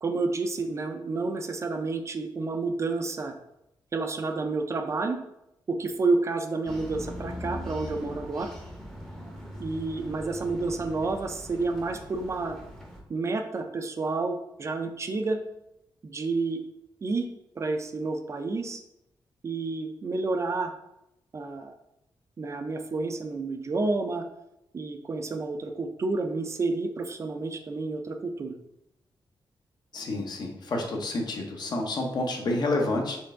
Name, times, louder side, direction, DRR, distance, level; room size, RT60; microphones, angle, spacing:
voice 1, 0.0-3.3 3.9-5.2 5.7-8.5 9.6-12.6 13.1-15.4 16.0-16.6 17.0-17.3 17.6-18.8 19.4-20.7 21.3-21.7 22.4-24.2 24.7-28.5, right 3 dB, 35° right, 6 dB, 0.4 m, -30 dB
sound 1, 6.6-13.0, equal, 5° left, 0.7 m, -41 dB
voice 2, 29.9-33.2, left 2 dB, 55° left, 2 dB, 0.8 m, -29 dB
4.4 x 3.2 x 3.7 m, 0.84 s
wide cardioid pair, 160°, 9 cm